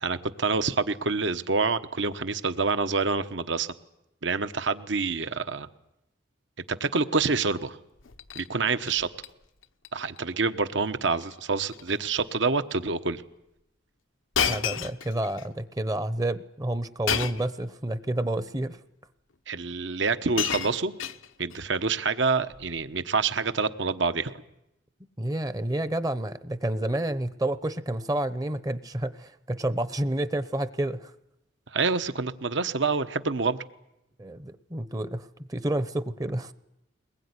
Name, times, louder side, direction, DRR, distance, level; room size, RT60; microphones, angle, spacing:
voice 1, 0.0-3.7 4.2-5.7 6.8-7.8 8.3-9.1 9.9-13.2 19.5-20.9 21.4-24.4 31.7-33.6, right 4 dB, 65° right, 11 dB, 1.2 m, -27 dB
Shatter, 8.0-8.5 8.8-9.3 9.6-9.9 10.2-10.3 11.1-11.4 11.7-12.0 12.7-12.8 14.3-15.5 17.1-17.6 18.6-18.7 19.7-19.8 20.1-21.6 22.5-22.8, left 8 dB, 85° left, 1.0 m, -31 dB
voice 2, 14.5-18.8 25.2-31.1 34.2-36.5, right 1 dB, 20° right, 13 dB, 0.9 m, -29 dB
22.5 x 21.0 x 9.8 m, 0.85 s
head